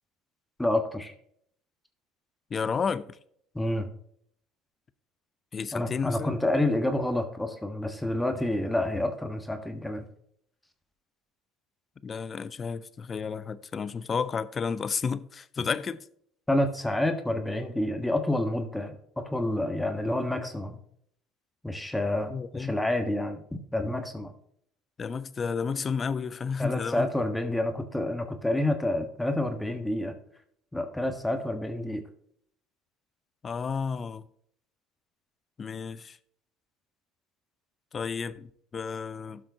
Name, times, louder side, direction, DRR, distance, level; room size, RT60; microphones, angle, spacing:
voice 1, 0.6-1.1 3.5-3.9 5.7-10.0 16.5-20.8 21.6-24.3 26.6-30.1 30.7-32.0, left 1 dB, 10° left, 1.4 m, -28 dB
voice 2, 2.5-3.0 5.5-6.3 12.0-16.0 22.3-22.8 25.0-27.1 33.4-34.3 35.6-36.2 37.9-39.4, left 6 dB, 35° left, 0.6 m, -32 dB
12.5 x 5.9 x 2.8 m
hypercardioid pair, 75°, 0 cm